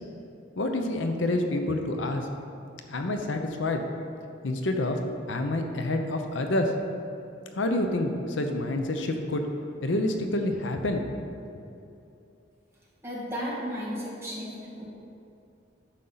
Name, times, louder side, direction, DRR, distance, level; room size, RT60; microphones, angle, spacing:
voice 1, 0.6-2.3 2.9-3.8 4.4-5.0 5.3-6.7 7.5-9.4 9.8-11.0 11.5-11.6, left 1 dB, 80° left, 5 dB, 0.7 m, -28 dB
voice 2, 13.0-14.8, equal, 15° right, -6 dB, 1.8 m, -34 dB
9.7 x 6.5 x 4.0 m, 2.7 s
head